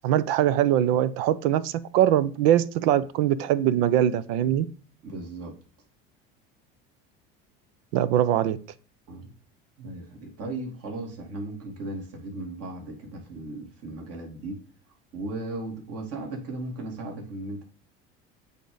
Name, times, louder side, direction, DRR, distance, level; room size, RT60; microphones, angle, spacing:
voice 1, 0.0-4.7 7.9-8.6, right 11 dB, 75° right, 0.7 m, -22 dB
voice 2, 5.0-5.5 9.1-9.3 9.8-14.6 15.1-17.6, right 2 dB, 55° right, 2.6 m, -36 dB
8.3 x 3.6 x 3.9 m
supercardioid pair, 95°, 30 cm